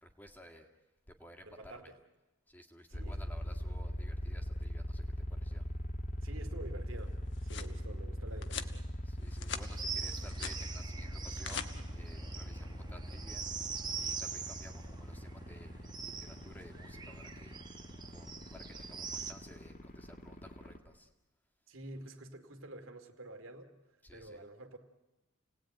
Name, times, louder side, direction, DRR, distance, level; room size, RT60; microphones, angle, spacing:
voice 1, 0.0-0.7 1.1-1.7 2.5-5.0 5.4-5.7 9.0-13.5 14.0-17.5 18.1-21.1 24.0-24.4, equal, 10° left, 3 dB, 1.9 m, -55 dB
voice 2, 1.5-2.0 2.9-3.2 6.2-7.1 7.4-8.9 21.7-23.7 24.1-24.8, right 1 dB, 85° right, 5 dB, 2.4 m, -49 dB
sound 1, 2.9-20.8, equal, 40° left, 2.0 m, -41 dB
sound 2, 7.1-7.7 8.4-8.7 9.2-9.7 10.0-10.6 11.2-11.7, left 7 dB, 60° left, 1.3 m, -42 dB
sound 3, 9.6-19.3, right 5 dB, 20° right, 1.2 m, -43 dB
29.5 x 18.5 x 9.1 m, 1.0 s
head